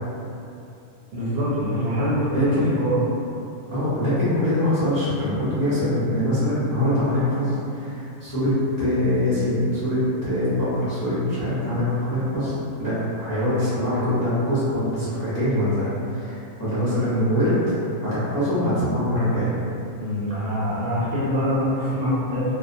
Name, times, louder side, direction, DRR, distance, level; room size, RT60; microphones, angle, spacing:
voice 1, 1.1-3.0 13.7-13.8 20.0-22.4, equal, 65° right, -10 dB, 0.7 m, -24 dB
voice 2, 2.3-2.6 3.7-17.6 18.0-19.5, left 1 dB, 20° left, -13 dB, 0.6 m, -23 dB
2.3 x 2.1 x 2.6 m, 2.7 s
omnidirectional pair, 1.3 m